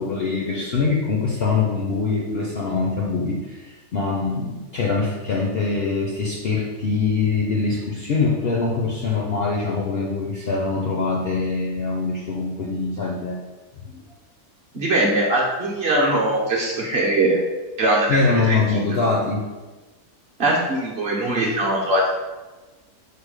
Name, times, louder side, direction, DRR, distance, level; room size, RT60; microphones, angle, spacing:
voice 1, 0.0-13.4 13.8-14.0 18.1-19.4, left 4 dB, 65° left, -2 dB, 0.6 m, -23 dB
voice 2, 14.7-17.4 17.8-18.2 18.5-18.6 20.4-22.2, right 1 dB, 50° right, -4 dB, 0.8 m, -21 dB
4.9 x 2.1 x 4.7 m, 1.2 s
omnidirectional pair, 1.6 m